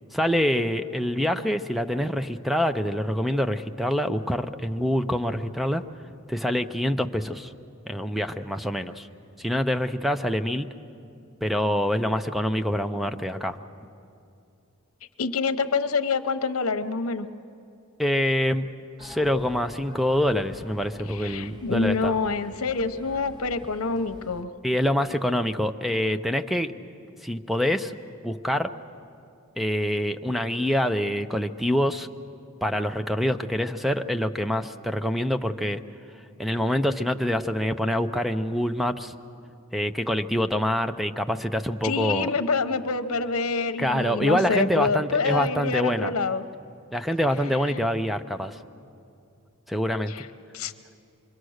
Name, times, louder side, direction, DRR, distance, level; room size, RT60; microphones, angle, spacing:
voice 1, 0.1-5.8 6.3-7.5 7.9-9.1 9.4-10.7 11.4-13.6 18.0-18.7 19.0-22.1 24.6-26.7 27.2-27.9 28.2-28.7 29.6-32.1 32.6-35.8 36.4-39.1 39.7-42.3 43.8-46.1 46.9-48.6 49.7-50.3, equal, ahead, 9 dB, 0.5 m, -25 dB
voice 2, 15.2-17.3 21.1-24.5 41.8-46.4 50.1-50.3 50.5-50.7, left 4 dB, 70° left, 10 dB, 0.9 m, -26 dB
sound 1, 19.0-24.4, left 1 dB, 20° right, 1.0 m, -46 dB
26.0 x 23.5 x 6.4 m, 2.5 s
head